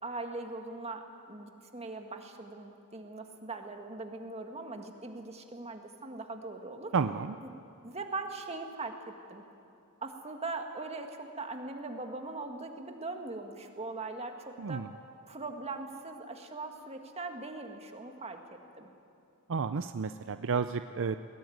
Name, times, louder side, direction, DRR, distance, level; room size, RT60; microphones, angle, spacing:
voice 1, 0.0-6.9 7.4-9.4 10.0-14.9 15.3-18.9, right 3 dB, 30° right, 4 dB, 1.9 m, -41 dB
voice 2, 6.9-7.4 14.6-14.9 19.5-21.2, right 5 dB, 60° right, 10 dB, 0.5 m, -31 dB
21.5 x 18.0 x 9.4 m, 2.6 s
head